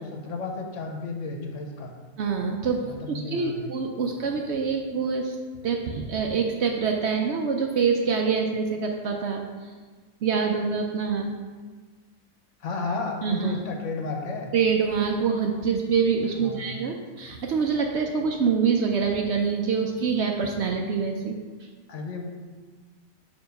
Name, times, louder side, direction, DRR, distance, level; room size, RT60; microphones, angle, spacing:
voice 1, 0.0-1.9 2.8-3.7 12.6-14.5 16.4-16.8 21.9-22.3, left 3 dB, 65° left, 2 dB, 1.0 m, -33 dB
voice 2, 2.2-2.8 3.1-5.4 5.6-9.7 10.2-11.3 13.2-13.6 14.5-21.4, right 5 dB, 65° right, 2 dB, 0.7 m, -25 dB
6.8 x 2.9 x 5.2 m, 1.4 s
omnidirectional pair, 1.4 m